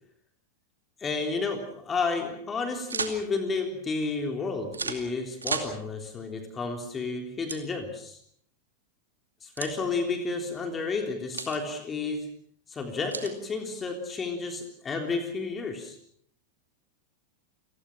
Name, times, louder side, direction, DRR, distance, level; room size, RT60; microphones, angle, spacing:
voice 1, 1.0-8.2 9.4-12.3 12.7-16.0, left 4 dB, 20° left, 4 dB, 3.5 m, -31 dB
sound 1, 2.9-3.2 4.7-5.0 5.4-5.7 7.5-7.6 9.6-9.8 11.3-11.6 13.1-13.4, right 4 dB, 75° right, 2.4 m, -32 dB
29.0 x 20.0 x 6.0 m, 0.67 s
figure-of-eight pair, 90°, 0 cm